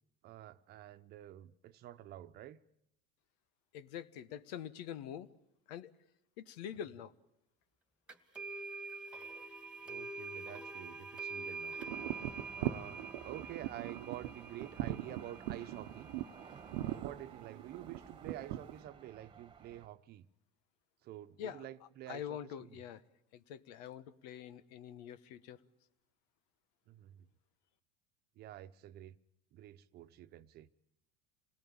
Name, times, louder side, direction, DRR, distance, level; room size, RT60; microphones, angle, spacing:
voice 1, 0.2-2.6 9.8-11.8 12.6-16.1 16.8-20.3 21.0-22.8 26.9-27.3 28.4-29.2 29.5-30.7, right 13 dB, 50° right, 1.1 m, -49 dB
voice 2, 3.7-5.3 5.7-5.9 6.4-7.1 21.4-21.6 22.1-23.0 23.3-25.6, left 9 dB, 80° left, 1.3 m, -45 dB
sound 1, 8.1-16.9, right 3 dB, 5° right, 2.2 m, -46 dB
sound 2, 11.8-18.8, right 14 dB, 80° right, 1.0 m, -40 dB
sound 3, 11.9-19.9, right 5 dB, 25° right, 1.6 m, -55 dB
27.5 x 18.0 x 8.9 m
supercardioid pair, 115°, 21 cm